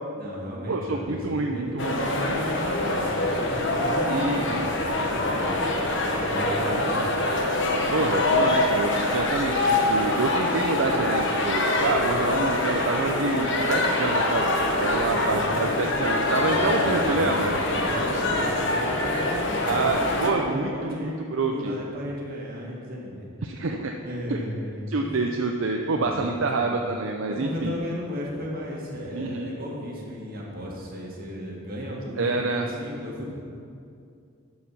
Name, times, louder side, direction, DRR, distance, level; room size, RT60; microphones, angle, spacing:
voice 1, 0.1-5.6 6.0-7.1 15.0-15.6 16.3-21.2 21.5-23.3 24.0-25.1 25.8-26.8 27.3-33.3, equal, 45° right, -3 dB, 1.9 m, -35 dB
voice 2, 0.7-2.4 4.1-4.7 6.5-6.8 7.9-14.5 14.8-17.5 19.7-21.8 23.4-24.0 24.3-24.4 24.9-27.7 29.1-29.5 32.2-32.7, right 3 dB, 65° right, 2 dB, 0.5 m, -27 dB
sound 1, 1.8-20.3, left 2 dB, 60° left, 1.1 m, -25 dB
12.5 x 4.8 x 5.8 m, 2.4 s
head